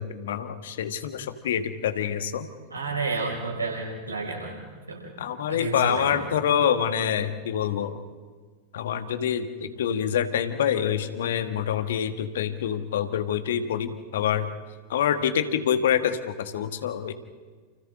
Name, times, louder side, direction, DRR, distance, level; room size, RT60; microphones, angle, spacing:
voice 1, 0.0-2.5 5.2-8.0 8.7-14.5 14.9-17.1, left 9 dB, 60° left, 8 dB, 1.7 m, -26 dB
voice 2, 2.7-4.5 4.9-5.1 5.5-6.2, right 3 dB, 80° right, -1 dB, 6.4 m, -31 dB
29.5 x 29.5 x 3.9 m, 1.5 s
figure-of-eight pair, 90°, 0 cm